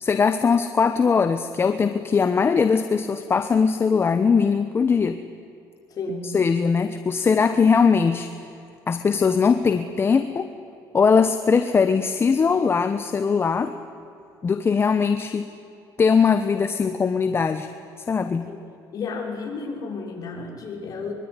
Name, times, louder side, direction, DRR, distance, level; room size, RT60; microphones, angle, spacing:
voice 1, 0.0-5.2 6.2-8.3 8.9-10.5 10.9-13.7 14.4-15.5 16.0-17.7 18.1-18.5, left 5 dB, 30° left, 9 dB, 1.1 m, -20 dB
voice 2, 5.9-6.3 18.5-18.6 18.9-21.1, left 4 dB, 45° left, 0 dB, 6.5 m, -32 dB
24.0 x 23.0 x 10.0 m, 2.7 s
cardioid pair, 125°, 8 cm